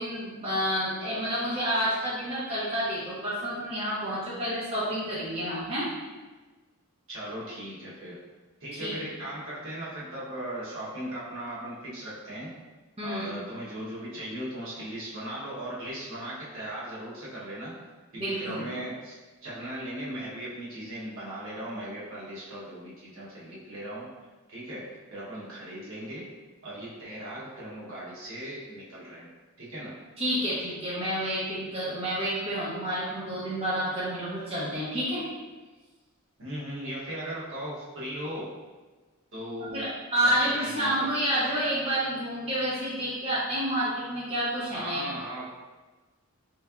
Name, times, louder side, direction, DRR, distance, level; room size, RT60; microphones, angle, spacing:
voice 1, 0.0-5.9 8.8-8.9 13.0-13.3 18.2-18.6 30.2-35.2 39.6-45.1, equal, 25° right, -9 dB, 0.7 m, -29 dB
voice 2, 7.1-8.2 8.6-12.5 13.0-17.7 18.1-24.1 24.5-26.3 26.6-29.3 29.6-30.0 36.4-38.5 39.3-39.9 40.2-41.1 44.7-45.4, right 1 dB, 65° right, -7 dB, 1.0 m, -38 dB
3.4 x 3.1 x 2.4 m, 1.3 s
head